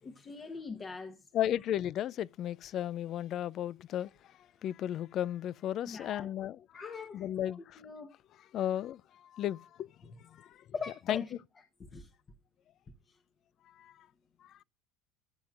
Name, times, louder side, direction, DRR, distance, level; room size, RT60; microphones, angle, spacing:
voice 1, 0.0-1.3 5.9-6.3 6.7-8.1 10.7-11.3 11.8-12.1 13.1-13.2, left 5 dB, 30° left, 1.1 m, -42 dB
voice 2, 1.3-6.6 7.1-7.8 8.5-10.6 11.1-11.2 13.7-14.1 14.4-14.6, left 11 dB, 50° left, 0.4 m, -35 dB
13.5 x 7.1 x 2.4 m
supercardioid pair, 100°, 0 cm